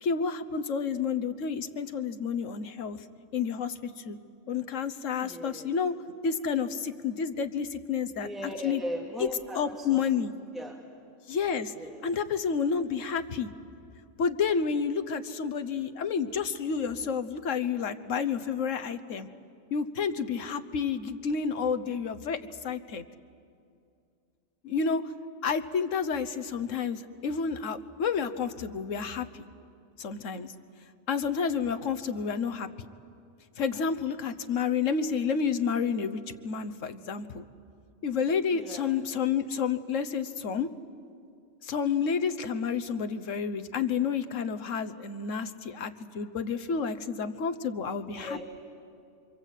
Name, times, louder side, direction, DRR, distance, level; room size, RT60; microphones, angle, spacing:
voice 1, 0.0-3.0 3.3-4.2 4.5-5.9 6.2-8.3 8.6-8.8 9.2-9.3 9.5-10.3 11.3-11.7 12.0-13.5 14.2-19.3 19.7-22.4 22.6-23.0 24.6-25.0 25.4-29.4 30.0-30.5 31.1-32.9 33.6-37.4 38.0-40.7 41.6-48.4, left 6 dB, 85° left, 10 dB, 1.4 m, -30 dB
voice 2, 5.2-5.7 8.2-10.0 10.5-10.7 11.7-12.0 38.5-38.9 48.1-48.4, equal, ahead, -1 dB, 2.2 m, -38 dB
28.0 x 24.5 x 8.3 m, 2.5 s
omnidirectional pair, 1.3 m